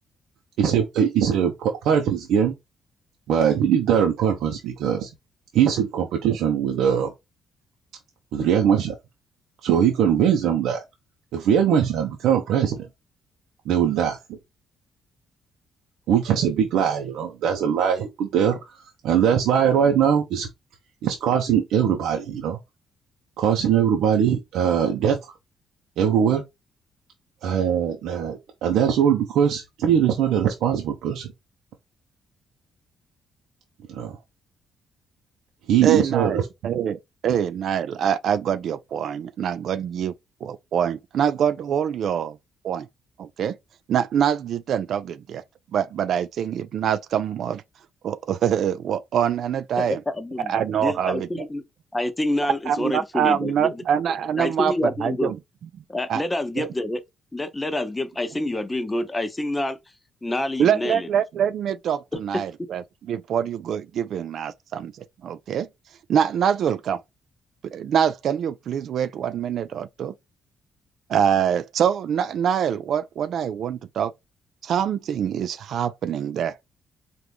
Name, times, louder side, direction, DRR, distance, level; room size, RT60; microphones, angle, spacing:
voice 1, 0.6-2.5 3.3-5.1 5.5-7.1 8.3-9.0 9.6-10.8 11.3-12.9 13.6-14.4 16.1-20.5 21.0-22.6 23.4-25.2 26.0-26.4 27.4-31.3 33.9-34.2 35.7-36.4, right 8 dB, 85° right, 0.9 m, -21 dB
voice 2, 35.8-36.4 36.6-40.1 40.4-42.4 42.6-42.9 43.2-43.6 43.9-45.4 45.7-47.6 48.0-50.0 50.5-51.4 52.7-55.4 56.1-56.2 56.6-56.7 60.6-64.9 65.2-65.7 66.1-67.0 67.6-70.1 71.1-74.1 74.6-76.6, right 8 dB, 70° right, 0.4 m, -24 dB
voice 3, 49.8-50.5 50.8-51.6 51.9-53.8 54.4-55.3 55.9-57.0 57.3-59.8 60.2-61.1 62.6-62.7, left 1 dB, 15° left, 0.8 m, -27 dB
4.5 x 2.5 x 3.4 m
cardioid pair, 90°, 0 cm